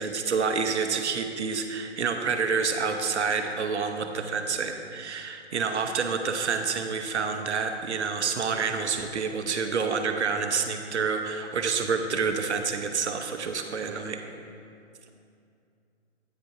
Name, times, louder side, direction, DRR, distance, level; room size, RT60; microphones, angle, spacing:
voice 1, 0.0-14.2, right 5 dB, 70° right, 6 dB, 0.9 m, -28 dB
voice 2, 3.9-4.5 5.5-6.1 13.8-14.1, right 3 dB, 25° right, 0 dB, 0.3 m, -49 dB
9.1 x 5.2 x 4.7 m, 2.5 s
figure-of-eight pair, 135°, 35 cm